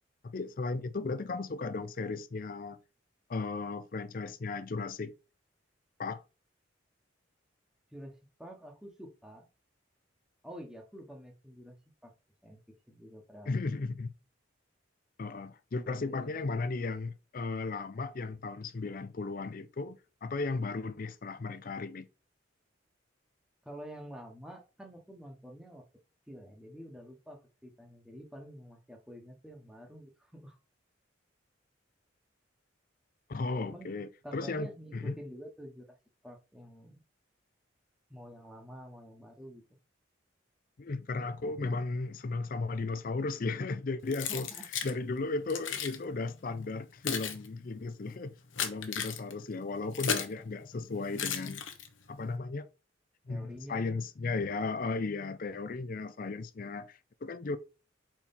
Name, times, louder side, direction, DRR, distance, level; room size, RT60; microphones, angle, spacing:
voice 1, 0.2-2.8 3.3-5.1 6.0-6.2 13.5-14.1 15.2-22.1 33.3-35.2 40.8-44.5 44.8-48.3 48.6-51.6 52.1-52.7 53.3-57.6, left 3 dB, 45° left, 0.5 m, -35 dB
voice 2, 7.9-9.5 10.4-12.1 12.4-12.6 12.9-13.5 16.1-16.3 23.6-25.9 26.3-30.6 33.7-33.9 34.2-36.0 36.2-37.0 38.1-39.6 44.3-44.4 53.3-53.9, equal, 5° right, 1.1 m, -48 dB
Keys jangling, 44.1-44.9 45.5-46.0 46.7-50.4 51.1-52.1, left 7 dB, 80° left, 1.0 m, -35 dB
4.4 x 4.3 x 5.2 m
head